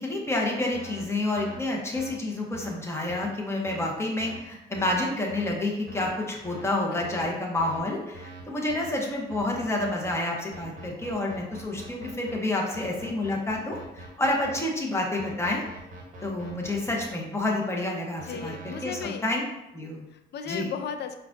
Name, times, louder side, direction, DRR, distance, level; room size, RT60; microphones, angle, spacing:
voice 1, 0.0-15.6 16.2-19.4 19.7-20.0 20.5-20.7, left 2 dB, 15° left, -1 dB, 0.8 m, -29 dB
sound 1, 0.7-1.0 1.4-1.6 2.0-2.1 2.5-2.7 3.1-3.2 3.7-3.8 4.2-4.4 4.7-5.0 5.3-5.5 5.9-6.1 6.4-6.6 7.0-7.2 7.6-7.8 8.1-8.4 8.7-8.9 9.3-10.1 10.5-12.3 12.7-14.6 15.2-17.0 18.2-19.0, right 2 dB, 40° right, 0.8 m, -44 dB
voice 2, 6.9-7.4 18.2-19.3 20.1-21.2, left 7 dB, 60° left, 7 dB, 0.4 m, -36 dB
4.6 x 2.3 x 2.5 m, 0.94 s
cardioid pair, 90°, 20 cm